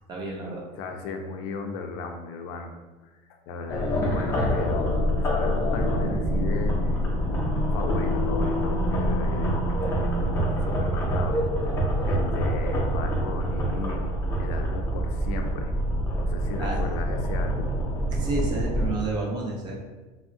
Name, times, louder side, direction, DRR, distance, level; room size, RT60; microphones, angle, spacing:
voice 1, 0.1-0.6 16.6-16.8 18.1-19.7, right 2 dB, 30° right, -1 dB, 0.5 m, -30 dB
voice 2, 0.8-2.8 3.0-3.1 3.5-4.9 5.2-7.1 7.7-10.1 10.5-11.7 12.0-14.1 14.4-15.8 16.2-17.7, left 4 dB, 75° left, 4 dB, 0.4 m, -35 dB
sound 1, 3.7-18.9, equal, 20° left, 0.5 m, -26 dB
3.4 x 2.0 x 2.5 m, 1.2 s
cardioid pair, 160°, 13 cm